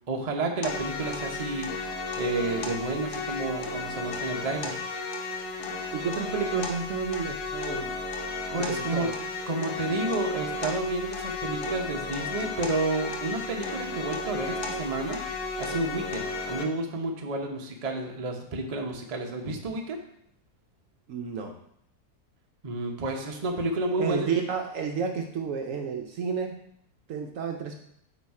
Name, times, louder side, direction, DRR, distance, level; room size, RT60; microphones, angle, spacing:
voice 1, 0.1-1.7 2.2-4.8 8.5-9.1 9.5-15.2 15.6-20.0 22.6-24.3, right 2 dB, 35° right, 2 dB, 0.7 m, -30 dB
sound 1, 0.6-16.6, left 3 dB, 65° left, 1.3 m, -33 dB
voice 2, 5.9-8.0 8.7-9.1 21.1-21.6 24.0-26.6 27.1-27.8, right 6 dB, 65° right, 3 dB, 0.9 m, -31 dB
8.4 x 3.2 x 4.7 m, 0.73 s
omnidirectional pair, 1.6 m